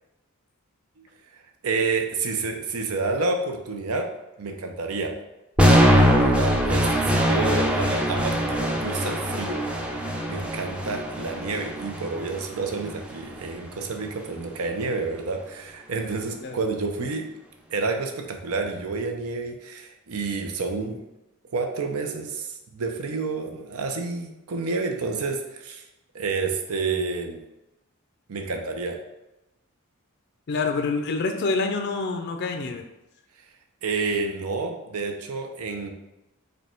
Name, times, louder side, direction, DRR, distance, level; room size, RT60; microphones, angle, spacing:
voice 1, 1.6-4.1 4.4-5.1 6.1-9.6 10.3-17.3 17.7-21.0 21.5-25.8 26.1-27.4 28.3-29.0 33.8-35.9, right 4 dB, 85° right, 4 dB, 0.6 m, -29 dB
sound 1, 5.6-13.6, equal, 5° right, 0.4 m, -22 dB
voice 2, 30.5-32.8, left 3 dB, 50° left, 5 dB, 0.4 m, -26 dB
5.2 x 2.2 x 4.3 m, 0.94 s
head